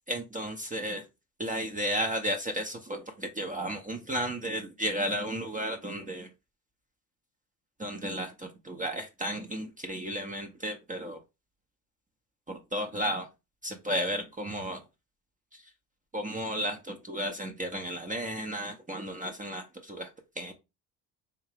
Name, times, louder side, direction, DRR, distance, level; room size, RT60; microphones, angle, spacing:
voice 1, 0.1-1.0 1.4-6.3 7.8-11.2 12.5-13.3 13.6-14.8 15.5-15.6 16.1-20.1 20.4-20.5, equal, 15° right, 4 dB, 0.7 m, -33 dB
3.6 x 2.7 x 3.4 m, 0.25 s
hypercardioid pair, 60°, 50 cm